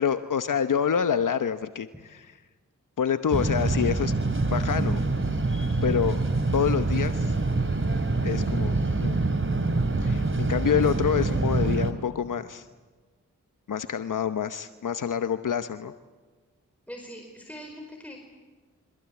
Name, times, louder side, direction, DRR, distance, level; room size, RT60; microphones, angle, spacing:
voice 1, 0.0-2.3 3.0-4.1 4.5-5.0 5.8-6.2 6.5-7.4 8.2-8.7 9.0-9.2 10.0-12.7 13.7-15.9, left 8 dB, 75° left, 10 dB, 1.0 m, -27 dB
sound 1, 3.3-11.9, right 3 dB, 40° right, 3.3 m, -25 dB
voice 2, 16.9-18.2, equal, 5° left, 2 dB, 5.0 m, -42 dB
27.5 x 25.5 x 8.4 m, 1.4 s
cardioid pair, 45°, 32 cm